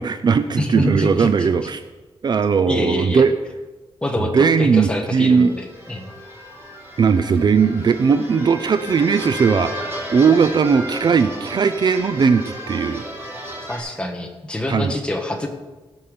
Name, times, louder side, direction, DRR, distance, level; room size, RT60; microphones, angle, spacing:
voice 1, 0.0-1.8 2.2-3.3 4.3-5.5 7.0-9.7 10.1-13.0 14.7-14.9, right 5 dB, 45° right, 11 dB, 0.5 m, -18 dB
voice 2, 0.6-1.7 2.7-3.3 4.0-6.1 13.7-15.5, left 1 dB, 10° left, 2 dB, 1.5 m, -26 dB
sound 1, 5.3-13.8, equal, 25° right, 4.1 m, -33 dB
17.0 x 5.7 x 6.8 m, 1.2 s
wide cardioid pair, 165°, 10 cm